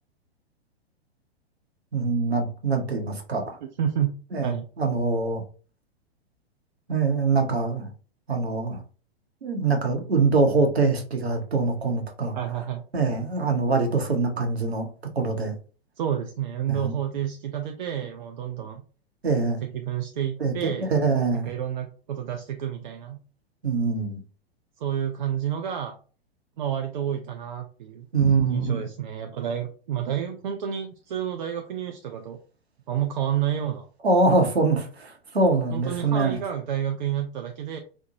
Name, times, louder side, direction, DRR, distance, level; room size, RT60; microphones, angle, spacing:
voice 1, 1.9-3.6 4.3-4.5 4.8-5.4 6.9-7.9 8.3-8.8 9.4-12.4 12.9-14.9 15.2-15.5 16.7-17.0 19.2-19.6 20.4-20.5 20.9-21.5 23.6-24.2 28.1-28.8 34.0-36.4, right 3 dB, 80° right, 4 dB, 0.8 m, -23 dB
voice 2, 3.6-4.1 4.4-4.7 12.3-12.8 16.0-18.8 19.6-21.0 21.3-23.2 24.8-26.0 26.6-28.1 28.5-32.4 32.9-33.9 35.7-37.8, right 9 dB, 50° right, 5 dB, 0.4 m, -30 dB
2.8 x 2.1 x 2.7 m, 0.38 s
figure-of-eight pair, 105°, 31 cm